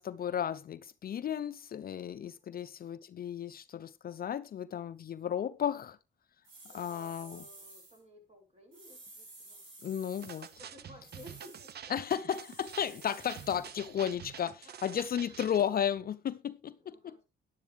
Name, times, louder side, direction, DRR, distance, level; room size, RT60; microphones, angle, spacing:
voice 1, 0.0-6.0 6.7-7.4 9.8-10.5 11.9-16.9, left 9 dB, 50° left, 0.6 m, -34 dB
sound 1, 6.4-8.0 8.7-10.6 11.0-11.7 12.3-13.7, right 2 dB, 75° right, 7.2 m, -53 dB
voice 2, 6.6-9.6 10.6-11.9 14.3-15.4 16.6-17.2, equal, 30° right, 6.7 m, -56 dB
sound 2, 10.2-15.7, right 8 dB, 55° right, 0.8 m, -48 dB
10.5 x 10.5 x 3.4 m
cardioid pair, 90°, 20 cm